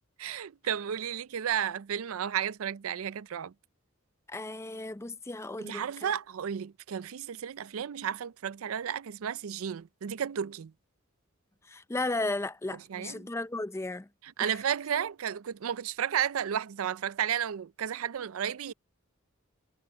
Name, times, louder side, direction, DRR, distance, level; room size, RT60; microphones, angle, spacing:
voice 1, 0.2-3.5 5.6-10.7 12.9-13.2 14.2-18.7, right 9 dB, 80° right, 0.4 m, -33 dB
voice 2, 4.3-6.2 11.7-14.1 14.4-14.6, left 2 dB, 15° left, 0.5 m, -35 dB
head